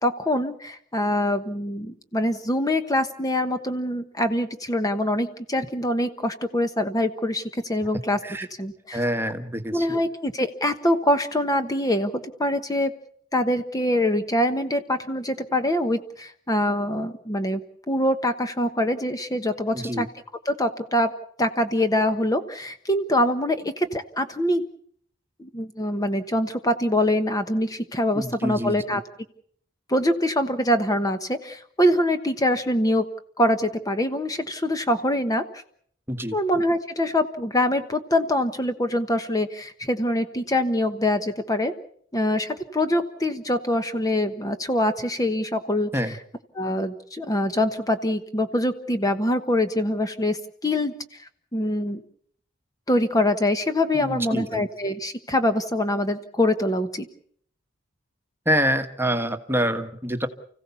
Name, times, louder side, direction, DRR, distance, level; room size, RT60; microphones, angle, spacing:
voice 1, 0.0-8.2 8.6-9.0 9.7-12.9 13.3-17.6 17.9-20.1 20.4-21.1 21.4-24.6 25.4-29.0 29.9-33.1 33.4-35.6 36.3-41.7 42.1-46.2 46.5-52.0 52.9-57.1, left 1 dB, 20° left, 8 dB, 1.1 m, -24 dB
voice 2, 8.9-9.9 19.7-20.1 28.2-28.8 36.1-36.4 45.9-46.2 53.9-54.6 58.4-60.3, equal, 10° right, 8 dB, 1.4 m, -26 dB
30.0 x 16.5 x 7.0 m, 0.65 s
head